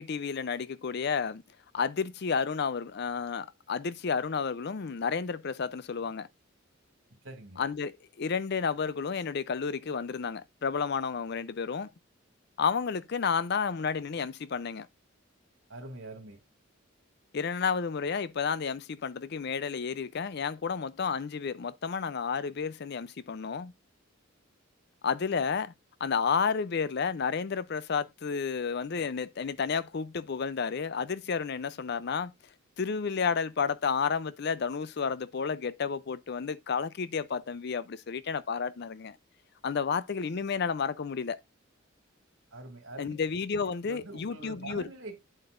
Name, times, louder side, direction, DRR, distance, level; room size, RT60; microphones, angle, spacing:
voice 1, 0.0-1.4 1.7-6.3 7.6-11.9 12.6-14.9 17.3-23.7 25.0-25.7 26.0-32.3 32.8-39.2 39.6-41.4 43.0-44.9, left 5 dB, 55° left, 0.5 m, -31 dB
voice 2, 7.2-7.6 15.7-16.4 42.5-43.1 43.8-45.2, right 2 dB, 75° right, 2.4 m, -44 dB
8.9 x 7.9 x 2.5 m
head